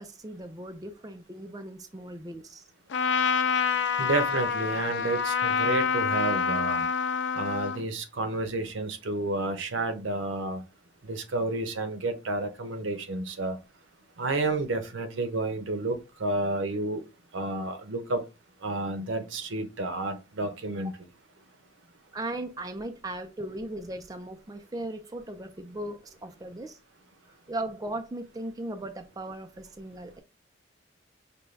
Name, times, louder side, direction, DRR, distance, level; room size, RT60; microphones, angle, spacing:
voice 1, 0.0-2.7 22.1-26.8 27.5-30.2, right 1 dB, 20° right, 0.3 m, -37 dB
Trumpet, 2.9-7.8, left 6 dB, 70° left, 0.4 m, -27 dB
voice 2, 4.0-6.8 7.3-10.6 11.0-13.6 14.2-17.0 17.3-18.2 18.6-20.9, right 2 dB, 85° right, 0.7 m, -30 dB
5.2 x 2.3 x 3.2 m
head